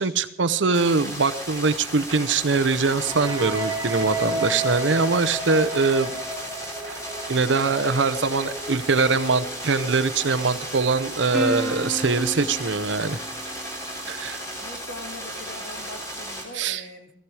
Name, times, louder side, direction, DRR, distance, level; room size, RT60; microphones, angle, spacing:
voice 1, 0.0-6.1 7.3-13.2 14.1-14.4 16.5-16.8, right 4 dB, 85° right, 13 dB, 0.7 m, -22 dB
sound 1, 0.7-16.4, equal, 15° left, 3.5 m, -35 dB
sound 2, 2.8-10.6, right 1 dB, 15° right, 3.8 m, -33 dB
Plucked string instrument, 11.3-14.1, right 1 dB, ahead, 2.1 m, -32 dB
voice 2, 14.6-17.1, left 1 dB, 75° left, 2 dB, 2.9 m, -42 dB
15.0 x 15.0 x 4.9 m, 0.78 s
head